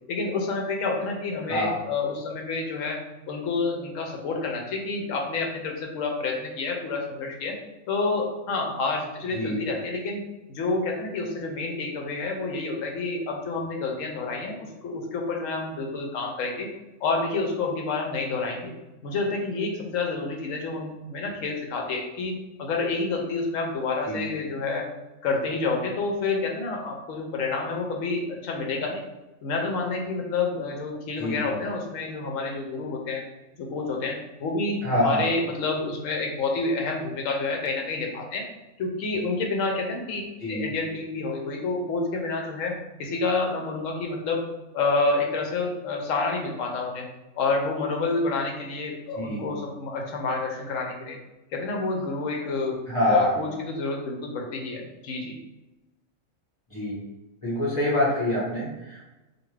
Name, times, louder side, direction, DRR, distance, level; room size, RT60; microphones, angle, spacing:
voice 1, 0.1-3.0 3.3-7.5 7.9-10.2 10.5-16.7 17.0-18.7 19.0-22.3 22.6-24.8 25.2-29.0 29.4-33.2 33.6-38.4 38.8-40.2 40.5-42.7 43.0-44.4 44.7-47.1 47.3-51.2 51.5-52.8 53.1-55.4, left 3 dB, 70° left, 1 dB, 1.0 m, -28 dB
voice 2, 1.4-1.8 9.3-9.6 24.1-24.3 31.2-31.6 34.8-35.3 40.4-40.7 49.1-49.4 52.9-53.4 56.7-57.0 57.4-59.0, left 1 dB, 25° left, -7 dB, 1.2 m, -25 dB
2.5 x 2.5 x 3.1 m, 1.0 s
omnidirectional pair, 1.5 m